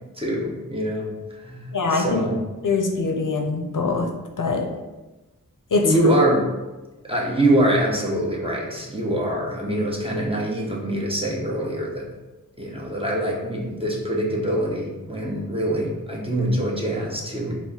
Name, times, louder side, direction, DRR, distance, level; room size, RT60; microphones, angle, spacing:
voice 1, 0.2-2.4 5.8-6.6 7.0-12.0 12.6-17.5, right 1 dB, 15° right, -3 dB, 0.9 m, -24 dB
voice 2, 1.7-2.2 2.6-4.1 4.4-4.6 5.7-5.8, left 4 dB, 65° left, 3 dB, 0.6 m, -23 dB
4.5 x 2.0 x 4.2 m, 1.1 s
wide cardioid pair, 40°, 34 cm